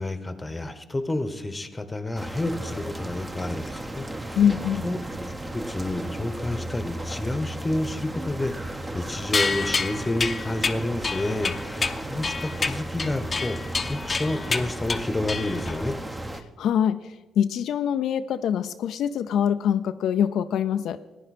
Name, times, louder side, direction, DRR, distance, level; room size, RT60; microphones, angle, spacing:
voice 1, 0.0-4.4 4.8-13.6 13.9-15.9, left 2 dB, 15° left, 11 dB, 1.0 m, -30 dB
sound 1, 2.2-16.4, right 1 dB, 15° right, 0.9 m, -35 dB
voice 2, 4.4-4.9 16.6-21.0, left 8 dB, 75° left, 9 dB, 0.4 m, -24 dB
sound 2, 9.3-15.9, left 4 dB, 30° left, 0.7 m, -28 dB
15.5 x 9.9 x 4.3 m, 1.2 s
cardioid pair, 85°, 0 cm